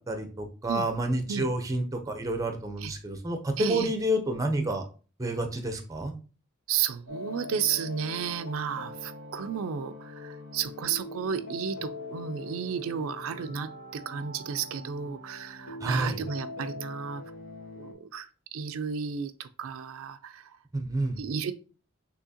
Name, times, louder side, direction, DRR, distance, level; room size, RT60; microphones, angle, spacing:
voice 1, 0.1-4.8 5.2-6.1 15.8-16.2 20.7-21.2, right 1 dB, 15° right, 6 dB, 0.5 m, -29 dB
voice 2, 3.6-3.9 6.7-17.2 17.8-20.6 21.2-21.5, right 7 dB, 80° right, 10 dB, 0.4 m, -33 dB
sound 1, 7.1-17.9, left 2 dB, 70° left, 1.3 m, -42 dB
6.2 x 2.8 x 2.7 m, 0.37 s
head